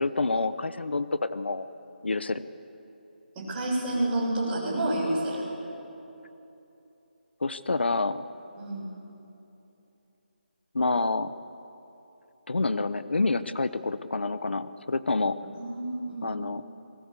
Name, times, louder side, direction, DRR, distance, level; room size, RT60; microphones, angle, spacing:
voice 1, 0.0-1.7 2.0-2.4 7.4-8.2 10.7-11.3 12.5-15.4 16.2-16.6, left 3 dB, 80° left, 13 dB, 1.0 m, -28 dB
voice 2, 3.4-5.4 8.6-8.8 15.5-16.4, right 1 dB, 15° right, -6 dB, 7.2 m, -29 dB
26.5 x 22.0 x 8.3 m, 2.9 s
figure-of-eight pair, 165°, 6 cm